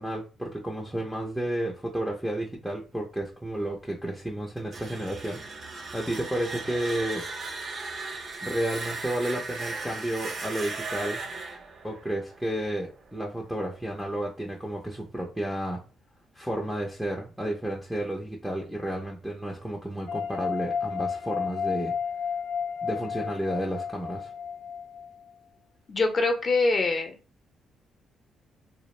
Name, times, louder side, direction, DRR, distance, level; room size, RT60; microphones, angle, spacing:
voice 1, 0.0-7.3 8.4-11.2 11.8-15.8 16.3-22.0 22.8-24.3, right 1 dB, ahead, -1 dB, 0.5 m, -32 dB
sound 1, 4.6-13.4, right 3 dB, 55° right, 0.6 m, -37 dB
sound 2, 20.1-25.3, left 6 dB, 75° left, 0.3 m, -32 dB
voice 2, 25.9-27.1, left 3 dB, 40° left, 5 dB, 0.6 m, -24 dB
2.3 x 2.0 x 3.1 m, 0.33 s
cardioid pair, 90°, 0 cm